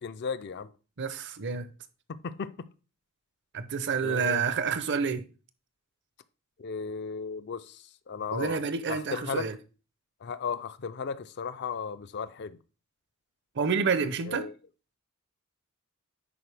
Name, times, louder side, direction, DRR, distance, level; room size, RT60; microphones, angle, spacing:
voice 1, 0.0-0.7 2.1-2.5 4.0-4.4 6.6-8.6 8.9-9.5 10.2-12.6 14.2-14.5, left 5 dB, 50° left, 0.5 m, -35 dB
voice 2, 1.0-1.7 3.5-5.3 8.3-9.5 13.6-14.5, right 5 dB, 55° right, 0.7 m, -29 dB
10.0 x 4.4 x 3.4 m
head